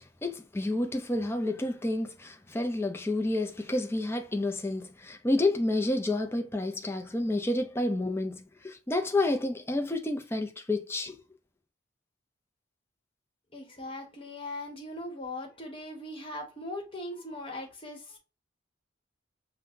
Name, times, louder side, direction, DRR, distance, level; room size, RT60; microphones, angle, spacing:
voice 1, 0.0-11.2, left 2 dB, 10° left, 0.5 m, -30 dB
voice 2, 13.5-18.2, left 1 dB, 25° left, 1.2 m, -40 dB
5.4 x 2.2 x 2.6 m
head